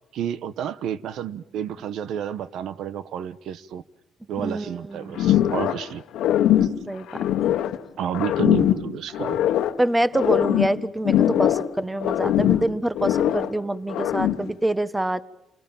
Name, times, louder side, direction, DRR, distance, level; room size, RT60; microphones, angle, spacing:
voice 1, 0.0-3.8 4.3-6.0 6.6-6.7 8.0-9.4, right 9 dB, 80° right, 14 dB, 1.0 m, -30 dB
voice 2, 4.4-5.2 6.9-7.1 7.4-7.5 9.8-15.2, right 1 dB, 10° right, 14 dB, 1.2 m, -26 dB
sound 1, 5.2-5.9 6.1-7.8 8.1-9.8 10.1-11.7 12.0-13.6 13.9-14.5, left 11 dB, 85° left, 1.3 m, -21 dB
28.5 x 19.5 x 9.0 m, 0.96 s
cardioid pair, 90°, 0 cm